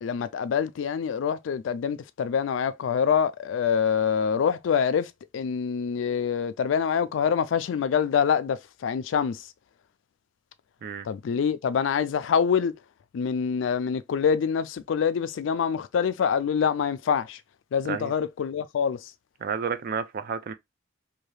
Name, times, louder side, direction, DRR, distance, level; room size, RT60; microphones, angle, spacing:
voice 1, 0.0-9.5 11.0-12.7 13.1-17.4 17.7-19.1, left 7 dB, 75° left, 0.3 m, -25 dB
voice 2, 19.4-20.5, right 6 dB, 50° right, 0.4 m, -31 dB
2.7 x 2.3 x 3.1 m
head